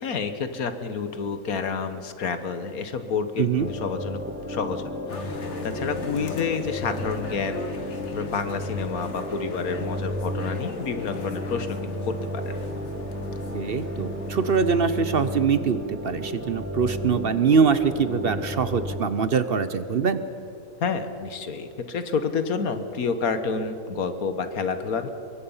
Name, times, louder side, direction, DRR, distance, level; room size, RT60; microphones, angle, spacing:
voice 1, 0.0-4.2 4.5-4.8 5.1-12.6 20.8-25.1, left 5 dB, 75° left, 9 dB, 1.7 m, -29 dB
sound 1, 3.6-19.0, equal, 10° right, 1.6 m, -33 dB
sound 2, 5.1-15.4, left 3 dB, 50° left, 1.7 m, -38 dB
voice 2, 13.5-20.2, right 5 dB, 50° right, 12 dB, 0.8 m, -23 dB
24.0 x 22.5 x 5.6 m, 2.8 s
omnidirectional pair, 1.6 m